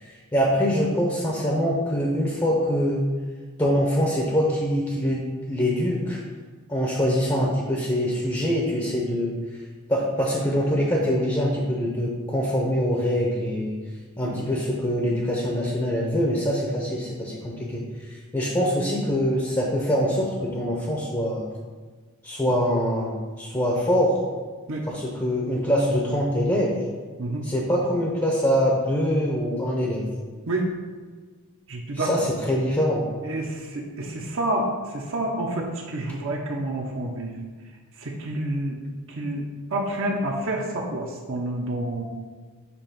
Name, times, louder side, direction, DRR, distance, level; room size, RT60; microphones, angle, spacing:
voice 1, 0.0-3.1 3.6-6.2 6.7-9.3 9.9-13.8 14.2-21.5 22.2-24.2 24.9-26.7 27.4-30.1 31.9-33.0, equal, 15° left, -1 dB, 0.8 m, -24 dB
voice 2, 31.7-32.1 33.2-37.3 38.0-38.8 39.1-42.0, right 1 dB, 60° right, -1 dB, 0.9 m, -28 dB
7.1 x 3.0 x 5.8 m, 1.4 s
head